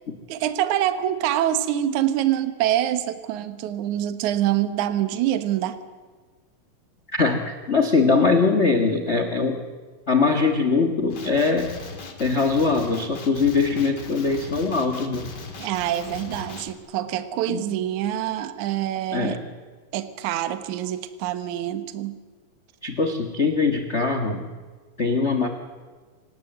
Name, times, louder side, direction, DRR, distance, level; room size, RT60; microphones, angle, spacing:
voice 1, 0.3-5.8 15.6-19.4 19.9-22.2, right 12 dB, 65° right, 10 dB, 2.4 m, -25 dB
voice 2, 7.1-9.6 10.1-11.7 12.2-15.3 17.5-17.6 19.1-19.4 22.8-24.5 25.0-25.5, left 4 dB, 70° left, 7 dB, 0.6 m, -22 dB
Male speech man speaking, 11.1-16.7, left 4 dB, 35° left, 2.2 m, -38 dB
27.5 x 18.0 x 7.9 m, 1.4 s
omnidirectional pair, 3.9 m